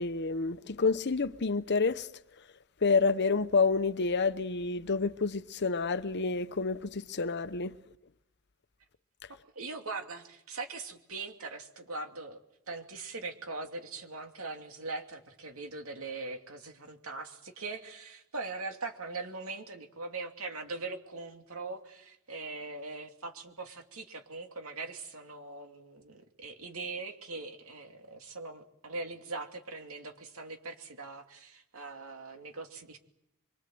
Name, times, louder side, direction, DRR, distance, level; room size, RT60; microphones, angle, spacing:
voice 1, 0.0-2.1 2.8-7.7, left 4 dB, 50° left, 0.9 m, -28 dB
voice 2, 9.5-12.4 12.7-33.0, right 3 dB, 65° right, 2.8 m, -41 dB
25.0 x 24.5 x 7.8 m
head